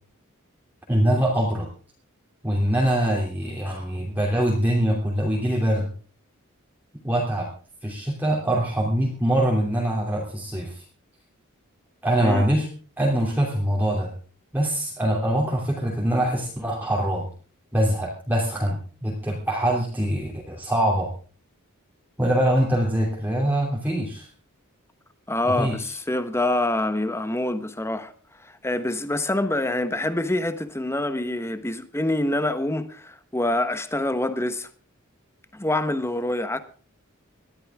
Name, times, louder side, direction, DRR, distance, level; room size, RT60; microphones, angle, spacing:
voice 1, 0.9-1.7 2.4-5.9 7.0-7.5 7.8-10.8 12.0-12.7 13.0-14.1 14.5-17.3 17.7-21.1 22.2-24.3 25.6-25.8, right 1 dB, 10° right, 2.9 m, -23 dB
voice 2, 25.3-28.1 28.4-34.7 35.5-36.6, left 1 dB, 10° left, 1.2 m, -26 dB
21.0 x 13.0 x 3.6 m
head